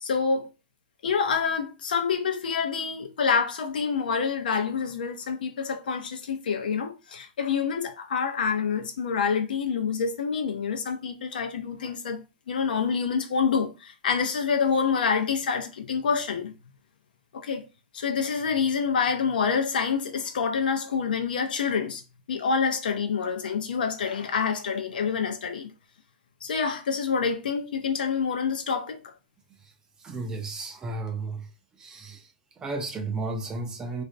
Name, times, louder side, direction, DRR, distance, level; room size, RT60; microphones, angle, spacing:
voice 1, 0.0-0.5 1.0-16.5 17.3-17.7 17.9-22.0 22.3-25.7 26.4-29.1, left 6 dB, 80° left, 0.5 m, -27 dB
voice 2, 30.0-31.5 31.8-32.2 32.6-34.0, right 3 dB, 15° right, 0.4 m, -33 dB
2.4 x 2.0 x 2.5 m
hypercardioid pair, 145°, 5 cm